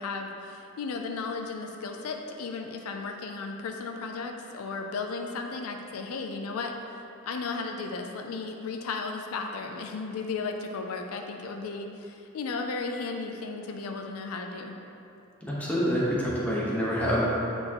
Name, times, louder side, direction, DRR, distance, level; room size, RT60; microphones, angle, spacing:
voice 1, 0.0-6.7 7.2-14.8, left 4 dB, 80° left, 3 dB, 0.4 m, -35 dB
voice 2, 15.4-17.2, equal, 5° left, -7 dB, 1.0 m, -27 dB
7.6 x 4.4 x 2.9 m, 2.8 s
head